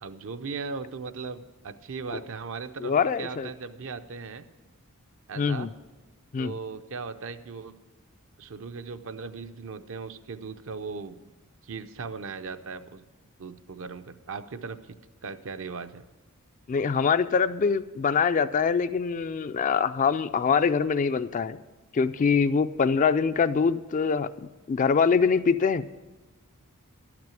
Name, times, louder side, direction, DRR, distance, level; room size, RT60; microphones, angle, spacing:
voice 1, 0.0-4.4 5.3-5.7 6.4-7.7 8.4-11.2 11.6-13.0 13.4-14.9 15.2-16.0, right 4 dB, 60° right, 10 dB, 0.6 m, -38 dB
voice 2, 2.8-3.5 5.4-5.7 6.3-6.5 16.7-21.6 21.9-24.3 24.7-25.8, left 5 dB, 35° left, 12 dB, 0.3 m, -24 dB
12.0 x 6.0 x 9.0 m, 1.2 s
head